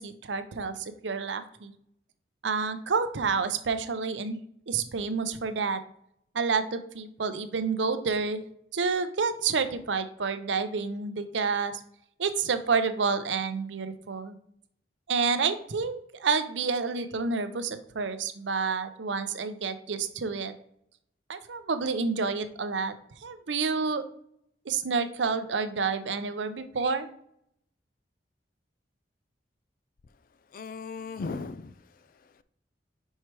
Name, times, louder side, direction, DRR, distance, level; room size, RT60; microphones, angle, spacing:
voice 1, 0.0-1.7 2.4-4.4 4.7-5.8 6.3-8.4 8.7-11.8 12.2-14.4 15.1-20.5 21.3-22.9 23.2-24.0 24.7-27.1, right 5 dB, 85° right, 0.6 m, -29 dB
voice 2, 30.5-32.4, left 4 dB, 50° left, 0.4 m, -38 dB
5.6 x 4.5 x 4.6 m
head